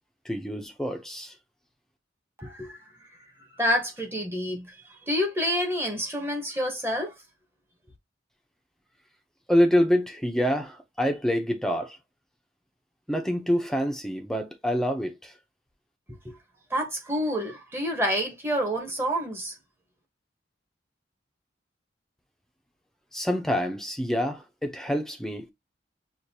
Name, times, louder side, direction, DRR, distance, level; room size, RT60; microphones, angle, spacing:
voice 1, 0.2-1.3 9.5-12.0 13.1-15.3 23.1-25.5, equal, 5° left, 0.7 m, -26 dB
voice 2, 2.4-2.8 3.6-7.1 16.2-16.4 16.7-19.5, equal, 15° right, 1.2 m, -28 dB
6.4 x 2.5 x 2.8 m
head